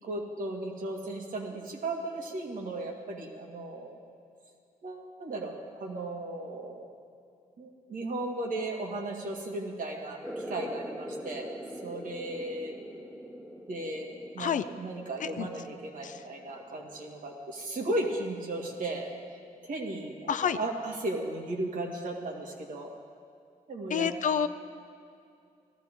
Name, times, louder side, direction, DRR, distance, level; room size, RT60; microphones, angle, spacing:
voice 1, 0.0-4.0 4.8-6.9 7.6-11.5 11.8-12.8 13.7-19.1 19.6-22.9 23.7-24.1, right 2 dB, 70° right, 0 dB, 2.1 m, -36 dB
sound 1, 10.2-17.4, equal, 5° right, 0.9 m, -43 dB
voice 2, 20.3-20.6 23.9-24.5, left 8 dB, 60° left, 11 dB, 0.6 m, -28 dB
18.0 x 14.0 x 3.8 m, 2.4 s
cardioid pair, 110°, 14 cm